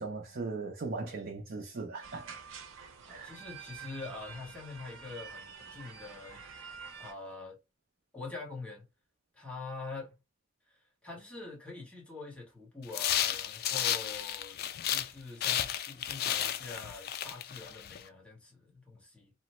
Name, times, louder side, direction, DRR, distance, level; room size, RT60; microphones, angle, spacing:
voice 1, 0.0-2.4 3.1-3.3, right 3 dB, 50° right, 0.5 m, -38 dB
sound 1, 2.0-7.1, right 6 dB, 85° right, 0.6 m, -48 dB
voice 2, 3.0-6.4 7.0-7.6 8.1-8.9 9.3-10.1 10.7-14.6 14.9-19.3, left 3 dB, 5° left, 1.0 m, -45 dB
sound 2, 12.9-15.1 15.4-18.0, left 10 dB, 50° left, 0.3 m, -33 dB
2.9 x 2.1 x 2.9 m
head